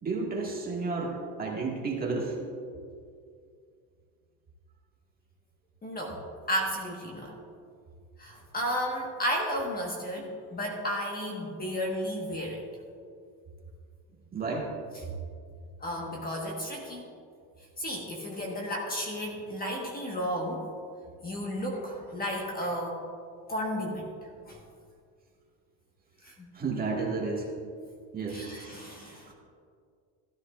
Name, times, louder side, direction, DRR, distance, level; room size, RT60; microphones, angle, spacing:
voice 1, 0.0-2.4 14.3-14.7 26.5-27.5 28.1-28.5 29.3-29.4, right 4 dB, 25° right, -2 dB, 1.9 m, -31 dB
voice 2, 5.8-7.3 8.2-12.6 15.8-17.1 17.8-20.6 21.2-23.0 23.5-24.1 24.5-24.6 26.2-26.5 28.3-29.3, equal, 25° left, -1 dB, 1.4 m, -33 dB
14.5 x 13.0 x 2.5 m, 2.2 s
cardioid pair, 140°, 39 cm